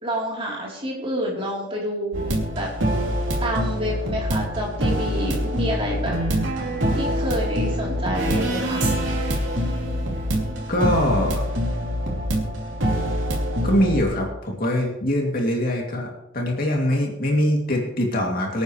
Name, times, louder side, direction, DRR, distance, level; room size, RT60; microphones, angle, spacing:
voice 1, 0.0-2.7 3.0-6.2 6.9-8.8, equal, 30° right, -3 dB, 3.8 m, -28 dB
sound 1, 2.1-14.0, equal, 70° right, 3.2 m, -25 dB
voice 2, 10.7-11.4 13.6-18.6, left 1 dB, 45° left, -1 dB, 2.8 m, -23 dB
24.5 x 9.2 x 3.3 m, 0.87 s
head